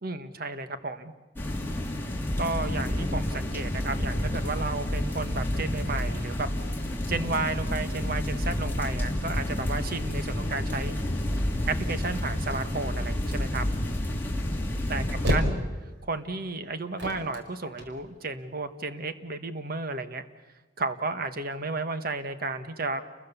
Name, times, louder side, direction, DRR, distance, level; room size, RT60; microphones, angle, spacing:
voice 1, 0.0-1.1 2.4-6.5 7.1-10.9 11.7-13.6 14.9-15.0 15.3-15.6 16.0-20.2 20.8-23.0, right 3 dB, 50° right, 9 dB, 1.5 m, -32 dB
sound 1, 1.4-15.3, left 1 dB, 10° left, 3.0 m, -30 dB
sound 2, 15.2-18.7, equal, 70° right, 4.8 m, -30 dB
30.0 x 22.0 x 7.0 m, 1.2 s
head